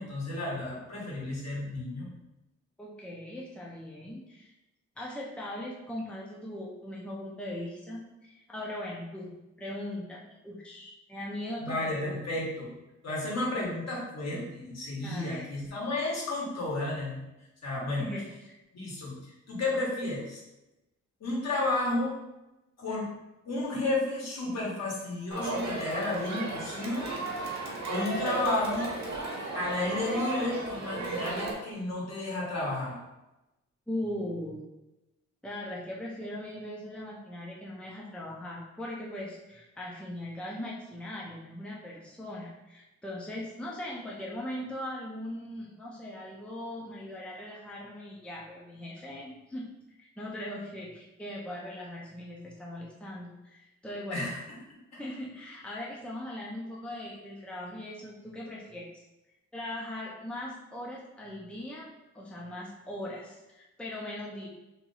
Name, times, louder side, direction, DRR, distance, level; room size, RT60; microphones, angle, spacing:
voice 1, 0.0-2.0 11.6-12.7 13.0-17.2 17.6-18.1 18.7-20.4 21.2-22.1 22.8-23.1 23.4-27.1 27.9-28.9 29.5-33.0 54.1-54.4 54.9-55.0, left 2 dB, 60° left, -4 dB, 1.5 m, -32 dB
voice 2, 2.8-4.5 5.0-9.3 9.6-12.2 15.0-15.5 17.9-18.6 33.9-34.6 35.4-49.7 50.0-54.2 55.0-59.0 59.5-61.9 62.1-64.5, left 1 dB, 5° left, -4 dB, 0.7 m, -39 dB
Crowd, 25.3-31.5, right 2 dB, 65° right, 1.0 m, -34 dB
3.0 x 2.6 x 3.9 m, 0.97 s
cardioid pair, 85°, 30 cm